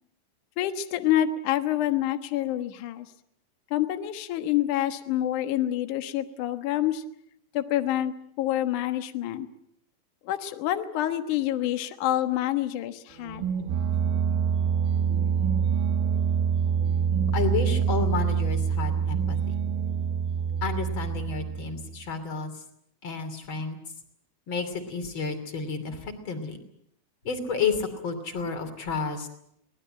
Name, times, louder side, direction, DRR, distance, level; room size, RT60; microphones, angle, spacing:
voice 1, 0.6-3.1 3.7-7.0 7.5-9.5 10.2-13.5, left 12 dB, 90° left, 9 dB, 1.7 m, -27 dB
sound 1, 13.2-22.0, right 7 dB, 75° right, 3.6 m, -26 dB
voice 2, 17.3-19.6 20.6-22.5 23.0-23.8 24.5-26.6 27.2-29.3, left 5 dB, 30° left, 8 dB, 2.6 m, -31 dB
24.0 x 19.0 x 8.8 m, 0.72 s
omnidirectional pair, 5.7 m